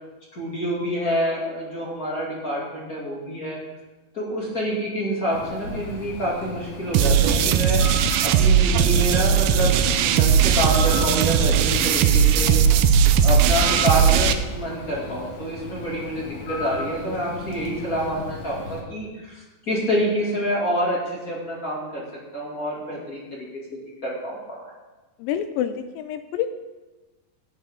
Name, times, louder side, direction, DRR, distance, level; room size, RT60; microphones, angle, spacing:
voice 1, 0.3-3.6 4.1-7.8 8.2-12.6 13.2-22.0 22.3-23.2 24.0-24.6, equal, 30° left, -4 dB, 2.1 m, -27 dB
Bird, 5.3-18.8, left 3 dB, 60° left, 2.4 m, -36 dB
sound 1, 6.9-14.3, right 7 dB, 80° right, 2.2 m, -18 dB
voice 2, 25.2-26.5, left 10 dB, 80° left, 9 dB, 2.2 m, -27 dB
16.5 x 8.1 x 3.7 m, 1.2 s
omnidirectional pair, 4.3 m